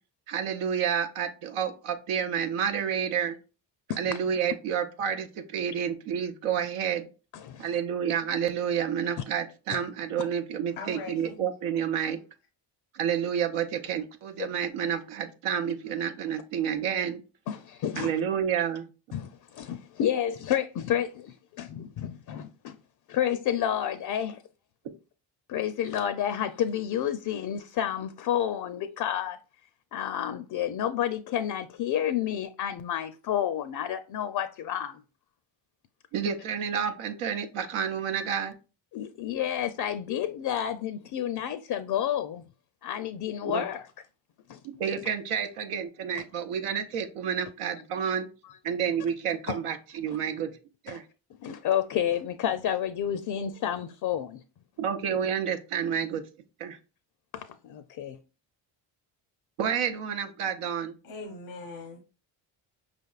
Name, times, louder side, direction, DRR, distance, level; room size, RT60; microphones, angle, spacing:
voice 1, 0.3-3.4 4.0-7.1 7.6-12.2 12.9-17.2 18.0-18.9 36.1-38.5 43.4-43.6 44.6-48.3 48.6-50.5 50.8-51.0 54.8-56.2 56.6-56.8 59.6-61.0, right 8 dB, 85° right, 0.8 m, -29 dB
voice 2, 7.3-7.7 9.7-9.8 17.5-18.1 19.1-22.8 23.1-24.4 25.5-29.4 29.9-35.0 38.9-42.4 42.8-43.9 44.5-44.6 45.1-45.2 46.1-46.2 49.5-49.6 50.9-51.0 51.4-54.4 57.3-58.2, left 10 dB, 50° left, 0.5 m, -30 dB
voice 3, 10.7-11.4 61.0-62.0, left 3 dB, 90° left, 0.9 m, -40 dB
5.1 x 3.4 x 2.3 m
cardioid pair, 80°, 50 cm